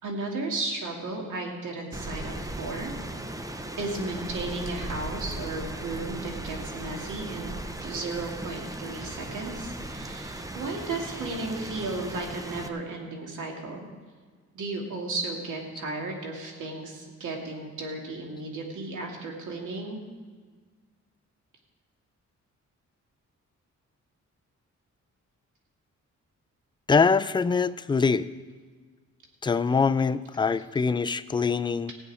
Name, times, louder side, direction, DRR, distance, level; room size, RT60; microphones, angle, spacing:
voice 1, 0.0-2.9 3.8-7.5 7.8-13.9 14.5-20.0, right 3 dB, 85° right, 0 dB, 2.6 m, -34 dB
Rain, 1.9-12.7, right 1 dB, 10° right, 0.7 m, -37 dB
voice 2, 26.9-28.3 29.4-31.9, left 5 dB, 15° left, 12 dB, 0.3 m, -24 dB
16.0 x 5.5 x 9.6 m, 1.5 s
wide cardioid pair, 130°, 30 cm